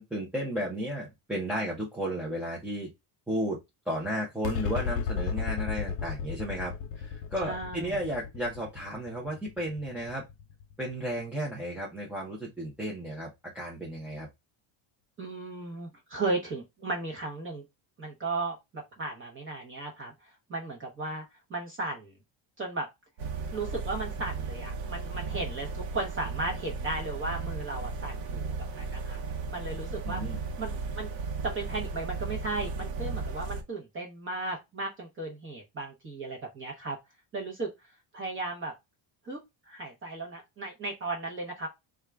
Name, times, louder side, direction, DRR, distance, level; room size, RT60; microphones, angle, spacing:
voice 1, 0.0-2.9 3.3-3.6 3.9-10.2 10.8-13.3 13.5-14.3 30.0-30.4, equal, 5° right, -4 dB, 0.5 m, -33 dB
sound 1, 4.4-11.1, left 6 dB, 50° left, 0.5 m, -35 dB
voice 2, 7.4-7.9 15.2-17.6 18.0-21.2 21.5-22.1 22.6-22.9 23.5-29.2 29.5-30.2 30.6-31.1 31.4-37.0 37.3-37.7 38.1-38.7 39.2-39.4 39.7-41.7, right 2 dB, 25° right, 0 dB, 0.8 m, -35 dB
sound 2, 23.2-33.6, right 4 dB, 65° right, 0.9 m, -35 dB
3.5 x 2.4 x 4.4 m, 0.21 s
cardioid pair, 175°, 49 cm